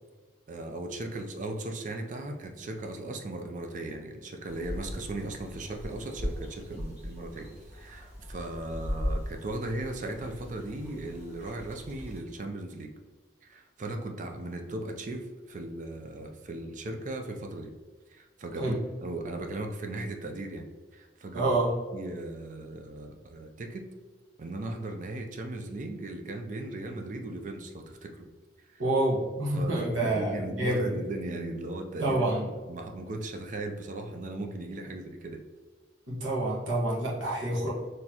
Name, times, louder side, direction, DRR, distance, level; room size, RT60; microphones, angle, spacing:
voice 1, 0.5-12.9 13.4-17.7 18.1-20.6 20.9-21.5 21.9-23.8 24.4-28.3 28.7-28.8 29.5-32.3 32.7-35.4, right 2 dB, 40° right, 4 dB, 0.4 m, -37 dB
sound 1, 4.5-12.2, equal, 10° right, 1.2 m, -38 dB
voice 2, 21.3-21.7 28.8-30.9 32.0-32.5 36.1-37.7, right 1 dB, 80° right, -5 dB, 1.3 m, -27 dB
4.4 x 3.2 x 2.8 m, 1.4 s
head